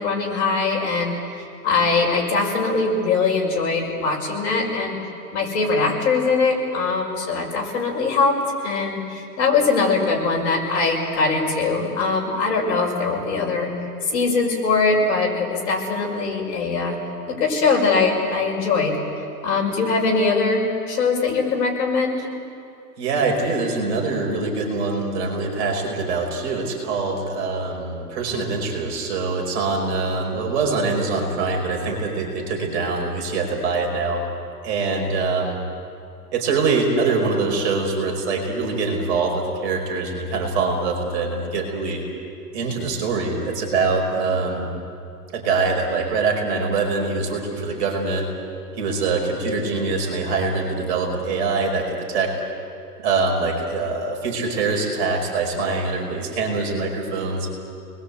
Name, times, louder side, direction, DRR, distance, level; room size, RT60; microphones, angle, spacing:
voice 1, 0.0-5.0 5.3-13.7 14.0-17.0 17.3-18.9 19.4-22.3, left 4 dB, 40° left, -1 dB, 5.7 m, -22 dB
voice 2, 23.0-34.2 34.6-35.6 36.3-42.0 42.5-44.7 45.3-48.3 48.8-52.3 53.0-57.5, right 3 dB, 40° right, 1 dB, 5.0 m, -24 dB
30.0 x 21.0 x 8.3 m, 2.5 s
hypercardioid pair, 165°, 49 cm